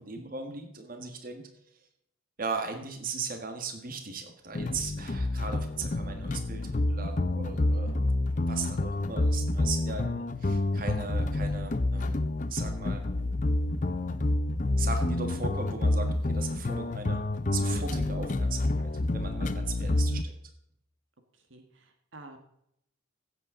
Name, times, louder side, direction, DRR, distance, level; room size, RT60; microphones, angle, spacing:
voice 1, 0.0-1.5 2.4-7.9 8.5-12.2 12.5-13.0 14.8-17.2 17.5-20.4, right 4 dB, 45° right, 5 dB, 1.6 m, -38 dB
sound 1, 4.5-20.2, left 2 dB, 40° left, 0.6 m, -28 dB
voice 2, 21.3-22.4, right 2 dB, 70° right, 6 dB, 1.5 m, -50 dB
15.5 x 8.1 x 3.8 m, 0.76 s
head